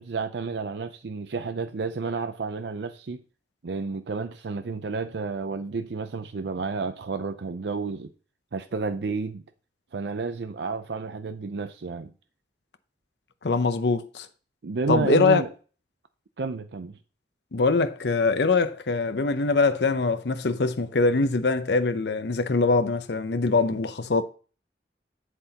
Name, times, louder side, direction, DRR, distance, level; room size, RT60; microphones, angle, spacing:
voice 1, 0.0-3.2 3.6-8.1 8.5-9.4 9.9-12.1 14.6-15.5 16.4-17.0, right 4 dB, 70° right, 0.5 m, -31 dB
voice 2, 13.4-14.3 14.9-15.4 17.5-24.2, left 3 dB, 65° left, 0.7 m, -23 dB
8.1 x 7.9 x 2.8 m
head